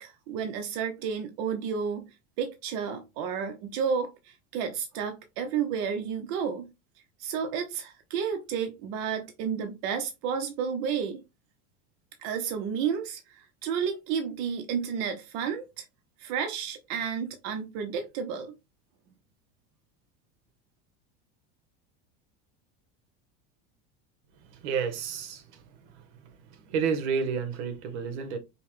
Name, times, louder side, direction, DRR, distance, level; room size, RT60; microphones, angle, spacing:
voice 1, 0.0-2.1 2.4-6.7 7.2-11.2 12.2-15.9 16.2-18.5, right 7 dB, 65° right, 0.8 m, -31 dB
voice 2, 24.5-25.6 26.2-26.3 26.7-28.4, right 6 dB, 80° right, 1.0 m, -30 dB
5.4 x 2.1 x 3.0 m
supercardioid pair, 135°, 33 cm